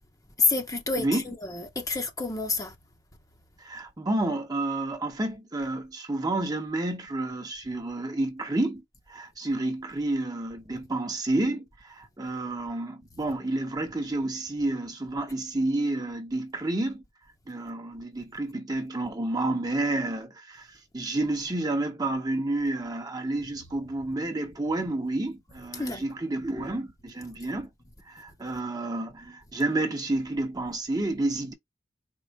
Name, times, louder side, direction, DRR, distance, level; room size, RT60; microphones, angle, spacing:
voice 1, 0.4-2.7 25.7-26.0, left 3 dB, 20° left, 0.8 m, -28 dB
voice 2, 3.6-8.8 9.1-17.0 17.5-20.7 20.9-27.7 28.1-31.5, right 2 dB, 20° right, 0.9 m, -30 dB
4.6 x 2.0 x 4.0 m
head